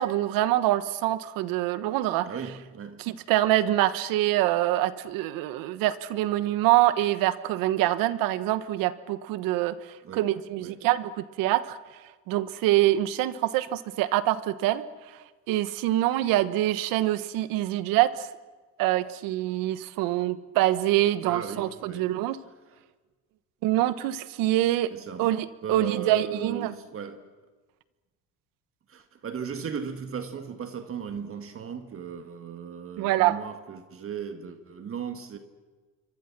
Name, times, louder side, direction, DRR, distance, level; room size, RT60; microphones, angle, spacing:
voice 1, 0.0-2.3 3.1-9.7 10.1-11.8 12.3-14.8 15.5-18.3 18.8-22.4 23.6-24.9 25.2-26.7 33.0-33.4, right 14 dB, 80° right, 14 dB, 1.3 m, -25 dB
voice 2, 2.2-3.0 10.0-10.3 10.6-10.8 21.2-22.2 24.9-25.3 25.6-27.3 28.9-35.4, right 7 dB, 40° right, 8 dB, 1.8 m, -37 dB
27.5 x 24.0 x 6.1 m, 1.3 s
cardioid pair, 110°, 34 cm